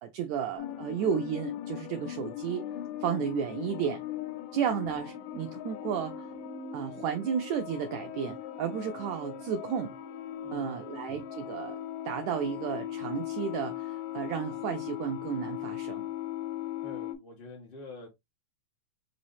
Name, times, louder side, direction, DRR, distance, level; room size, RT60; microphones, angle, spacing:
voice 1, 0.0-2.6 3.0-4.0 4.5-6.3 6.7-10.0 10.5-11.8 12.0-16.1, right 8 dB, 85° right, 1.6 m, -33 dB
sound 1, 0.6-17.2, left 10 dB, 90° left, 2.2 m, -39 dB
voice 2, 10.4-11.0 16.8-18.1, left 2 dB, 40° left, 0.7 m, -47 dB
4.8 x 3.1 x 2.6 m
omnidirectional pair, 3.7 m